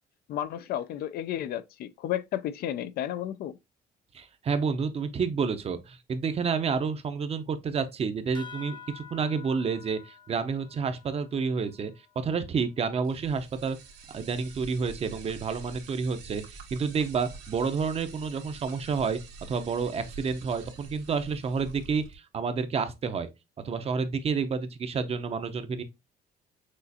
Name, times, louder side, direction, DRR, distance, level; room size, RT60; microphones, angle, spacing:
voice 1, 0.3-3.6, left 11 dB, 65° left, 0.4 m, -32 dB
voice 2, 4.1-11.9 12.2-13.8 14.1-19.2 19.5-23.3 23.6-25.8, right 5 dB, 35° right, 0.6 m, -29 dB
sound 1, 8.3-13.3, left 6 dB, 25° left, 0.7 m, -49 dB
sound 2, 13.0-22.1, right 4 dB, 85° right, 1.5 m, -46 dB
6.3 x 2.4 x 2.7 m
cardioid pair, 110°, 17 cm